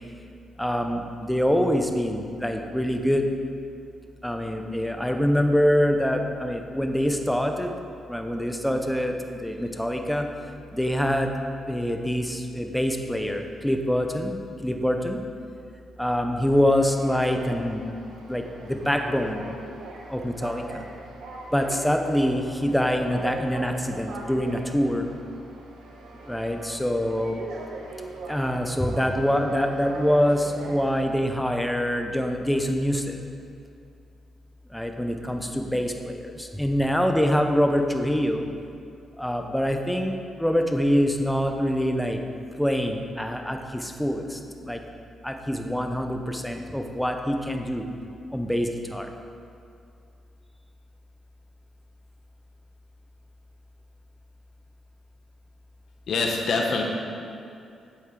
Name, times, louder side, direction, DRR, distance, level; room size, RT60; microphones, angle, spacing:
voice 1, 0.6-3.2 4.2-7.7 8.1-10.3 10.7-11.3 11.7-15.2 16.0-17.8 18.3-19.4 20.1-20.9 21.5-25.1 26.3-27.4 28.3-33.2 34.7-38.5 39.2-42.2 42.6-44.8 45.2-47.8 48.3-49.1, equal, 5° left, 4 dB, 0.6 m, -25 dB
sound 1, 16.5-31.0, right 3 dB, 80° right, 1.1 m, -41 dB
voice 2, 56.1-56.8, left 4 dB, 60° left, 1 dB, 1.1 m, -24 dB
8.6 x 7.7 x 3.8 m, 2.5 s
cardioid pair, 135°, 0 cm